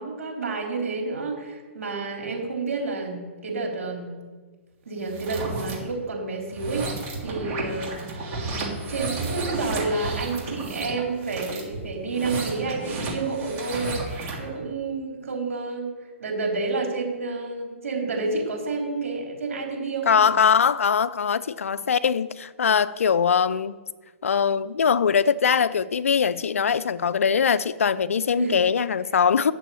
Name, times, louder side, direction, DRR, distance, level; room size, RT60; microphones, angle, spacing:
voice 1, 0.0-4.1 4.9-8.0 8.4-15.9 16.2-20.3 28.3-28.7, right 3 dB, 80° right, 3.8 m, -30 dB
sound 1, 5.0-5.7 6.4-14.5, right 3 dB, 35° right, 3.2 m, -32 dB
voice 2, 20.1-23.8 24.2-29.5, left 6 dB, 85° left, 0.5 m, -22 dB
10.0 x 7.0 x 7.0 m
hypercardioid pair, 135°, 7 cm